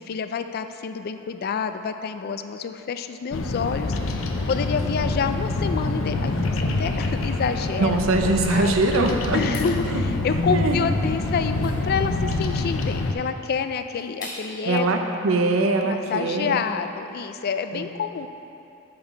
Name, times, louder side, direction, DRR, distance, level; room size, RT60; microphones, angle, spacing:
voice 1, 0.0-7.9 8.2-8.8 9.3-14.9 15.8-18.3, left 6 dB, 50° left, 9 dB, 0.3 m, -28 dB
Bird vocalization bird call bird song, 3.3-13.1, left 2 dB, 80° left, 0.6 m, -26 dB
voice 2, 7.8-9.5 9.8-10.8 14.6-15.0 15.2-16.6 17.7-17.8, right 2 dB, 90° right, 4 dB, 0.7 m, -22 dB
sound 1, 9.4-14.7, left 1 dB, 20° left, 1.8 m, -44 dB
8.6 x 6.3 x 3.8 m, 2.9 s
head